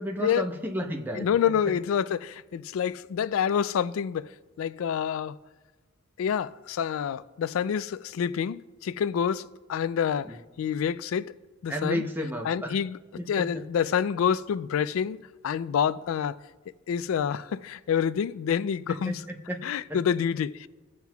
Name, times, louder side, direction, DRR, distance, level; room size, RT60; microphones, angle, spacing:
voice 1, 0.0-1.3 10.3-10.4 11.7-12.8 13.2-13.6 18.9-19.6 19.9-20.0, equal, 10° right, 0.8 m, -32 dB
voice 2, 1.2-4.3 4.6-5.3 6.2-11.3 11.6-12.0 12.5-13.0 13.3-15.2 15.4-16.4 16.9-19.2 19.6-20.7, left 8 dB, 85° left, 0.3 m, -27 dB
19.5 x 7.5 x 2.3 m
head